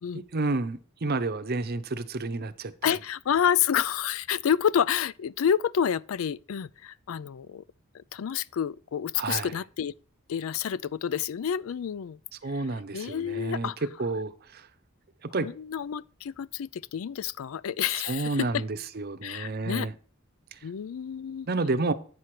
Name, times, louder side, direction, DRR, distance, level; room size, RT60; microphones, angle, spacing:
voice 1, 0.3-2.7 9.2-9.5 12.4-13.7 14.0-14.6 15.3-15.5 18.1-19.9 21.5-21.9, right 3 dB, 45° right, 0.7 m, -30 dB
voice 2, 2.8-7.6 7.9-9.9 10.3-12.2 12.5-12.6 12.9-13.8 15.4-18.6 19.2-19.9 20.6-21.5, left 8 dB, 70° left, 0.4 m, -29 dB
9.3 x 6.0 x 4.8 m
head